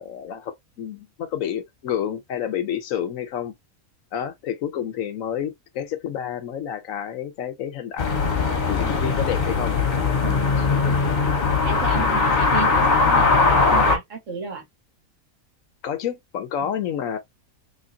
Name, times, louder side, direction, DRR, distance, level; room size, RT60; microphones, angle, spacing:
voice 1, 0.0-3.5 4.1-8.2 8.7-9.8 10.7-11.2 12.0-12.3 15.8-17.2, left 9 dB, 70° left, 1.1 m, -29 dB
sound 1, 8.0-14.0, left 4 dB, 35° left, 1.0 m, -20 dB
voice 2, 10.2-11.1 11.7-14.6 16.6-16.7, right 5 dB, 60° right, 1.7 m, -33 dB
3.5 x 3.2 x 2.6 m
omnidirectional pair, 1.5 m